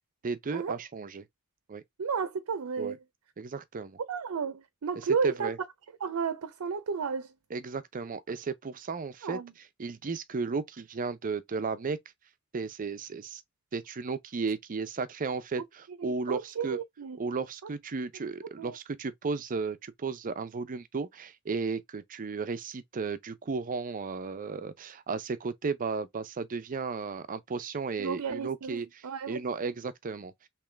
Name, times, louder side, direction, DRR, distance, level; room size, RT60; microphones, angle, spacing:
voice 1, 0.2-1.2 1.7-1.8 2.8-2.9 3.4-4.0 5.2-5.6 7.5-9.4 9.8-12.0 12.5-13.4 13.7-16.8 17.2-28.9 29.3-30.3, right 4 dB, 40° right, 0.5 m, -34 dB
voice 2, 2.0-3.0 4.1-5.5 6.0-7.3 9.2-9.5 16.0-17.2 18.6-18.8 28.0-29.4, right 6 dB, 85° right, 0.5 m, -33 dB
3.6 x 3.0 x 3.2 m
head